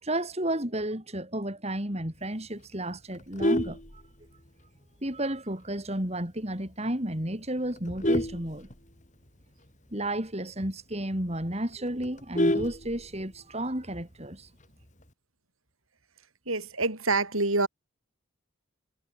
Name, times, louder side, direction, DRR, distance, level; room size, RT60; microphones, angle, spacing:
voice 1, 0.0-4.0 5.0-8.7 9.9-14.5, right 1 dB, 30° right, 4.2 m, -32 dB
Vehicle horn car horn honking, 3.1-4.6 5.1-5.3 5.6-5.7 6.1-6.2 6.5-6.9 7.5-9.3 9.7-9.8 10.0-10.1 10.5-10.6 11.0-11.1 11.4-13.4 14.6-15.0, left 1 dB, 35° left, 5.0 m, -29 dB
voice 2, 16.5-17.7, right 3 dB, 80° right, 7.5 m, -26 dB
head